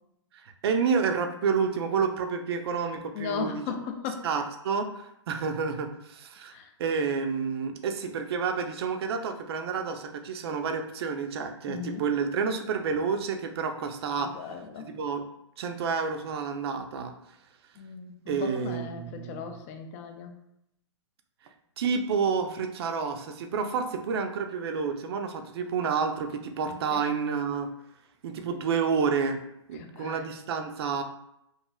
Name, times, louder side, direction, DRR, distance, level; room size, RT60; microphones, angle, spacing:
voice 1, 0.3-3.6 4.2-14.3 14.8-15.3 15.6-17.1 18.3-19.5 21.8-27.7 28.2-29.4 29.7-31.0, right 5 dB, 55° right, 6 dB, 0.4 m, -29 dB
voice 2, 3.1-4.3 6.5-6.7 11.7-12.0 14.2-14.9 17.8-20.4 26.6-27.0 29.7-30.2, left 6 dB, 30° left, 5 dB, 0.3 m, -37 dB
3.0 x 2.5 x 2.2 m, 0.80 s
hypercardioid pair, 140°, 15 cm